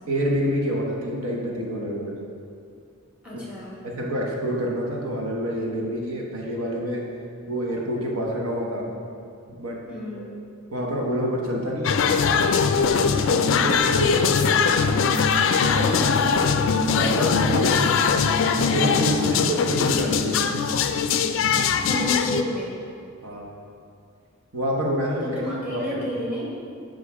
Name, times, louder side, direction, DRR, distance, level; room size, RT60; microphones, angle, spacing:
voice 1, 0.1-2.1 3.3-3.4 3.8-7.0 7.5-8.9 9.5-9.8 10.1-10.3 10.7-12.1 12.7-13.0 13.3-14.8 15.6-15.9 16.9-18.0 18.7-19.2 19.5-20.6 23.2-23.5 24.5-26.0, equal, 75° right, -2 dB, 1.1 m, -27 dB
voice 2, 3.2-3.8 9.9-10.3 15.9-16.5 19.0-19.5 21.9-22.8 25.2-26.6, left 1 dB, 5° right, -6 dB, 1.5 m, -31 dB
sound 1, 11.8-22.4, left 6 dB, 60° left, 0.3 m, -21 dB
8.2 x 5.1 x 3.5 m, 2.4 s
head